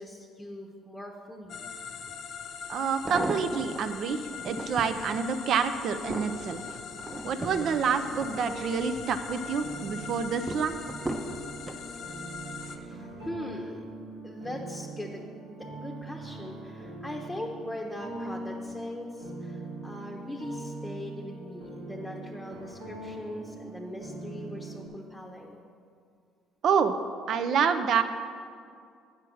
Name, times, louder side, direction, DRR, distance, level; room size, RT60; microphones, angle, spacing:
voice 1, 0.0-1.7 12.8-13.8 14.2-15.2 15.5-25.6, left 1 dB, 5° left, -1 dB, 0.9 m, -40 dB
sound 1, 1.5-12.8, left 6 dB, 60° left, 0.6 m, -42 dB
sound 2, 2.1-2.2 2.8-3.8 4.3-5.0 5.5-9.0 9.3-9.8 10.5-11.8 12.6-13.0 13.3-13.4, right 1 dB, 15° right, 0.8 m, -37 dB
voice 2, 2.7-6.6 7.2-10.8 26.6-27.0 27.3-28.0, right 6 dB, 60° right, 10 dB, 0.6 m, -27 dB
sound 3, 7.3-24.9, right 2 dB, 85° right, 1.6 m, -42 dB
7.7 x 5.8 x 6.2 m, 2.3 s
supercardioid pair, 75°, 0 cm